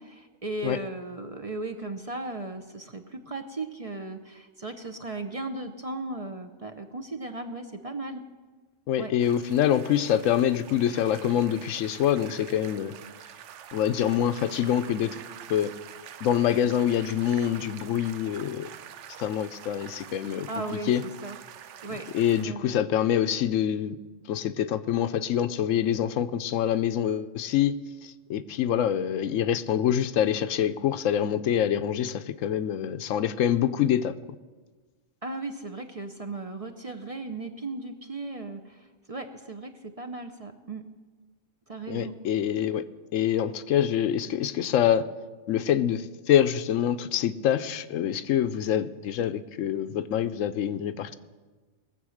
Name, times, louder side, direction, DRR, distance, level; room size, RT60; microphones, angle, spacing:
voice 1, 0.0-8.2 9.0-9.1 20.2-21.4 21.8-22.1 22.4-22.7 35.2-40.8 41.7-42.1, right 2 dB, 35° right, 6 dB, 0.7 m, -36 dB
voice 2, 8.9-12.9 13.7-15.2 15.5-15.7 16.2-18.7 19.2-20.5 20.9-21.0 22.1-24.0 24.3-27.7 28.0-34.1 41.9-42.8 43.1-45.1 45.5-51.1, left 10 dB, 85° left, 12 dB, 1.0 m, -25 dB
sound 1, 9.2-22.5, right 10 dB, 70° right, 0.9 m, -46 dB
19.5 x 7.6 x 6.4 m, 1.3 s
omnidirectional pair, 1.3 m